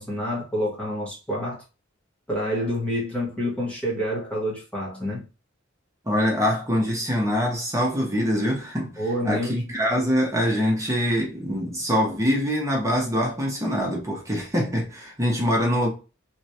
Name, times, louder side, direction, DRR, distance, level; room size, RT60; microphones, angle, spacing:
voice 1, 0.0-1.6 2.3-5.3 9.0-9.6, equal, 5° left, 1.6 m, -28 dB
voice 2, 6.1-15.9, equal, 15° right, 1.0 m, -24 dB
3.2 x 3.2 x 2.8 m
head